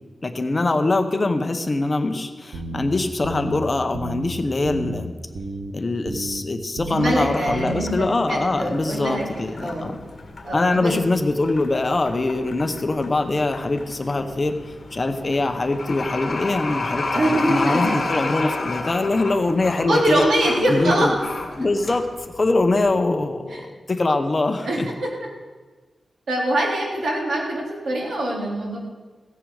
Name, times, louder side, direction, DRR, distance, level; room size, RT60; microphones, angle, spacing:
voice 1, 0.2-5.1 5.7-10.0 10.5-14.6 14.9-20.2 20.7-21.1 21.6-24.9, left 2 dB, 30° left, 7 dB, 0.9 m, -23 dB
sound 1, 2.5-2.9 3.2-3.6 3.9-4.3 4.6-5.0 5.3-5.7 6.1-6.4 6.8-7.1 7.5-7.8, right 2 dB, 60° right, 1.2 m, -32 dB
voice 2, 6.9-9.9 10.4-10.9 17.1-17.9 19.9-21.1 23.5-23.6 24.6-25.1 26.3-28.8, right 1 dB, 85° right, -3 dB, 3.7 m, -23 dB
sound 2, 7.0-23.0, left 3 dB, 50° left, 1.8 m, -32 dB
16.0 x 9.9 x 4.9 m, 1.3 s
wide cardioid pair, 145°, 0 cm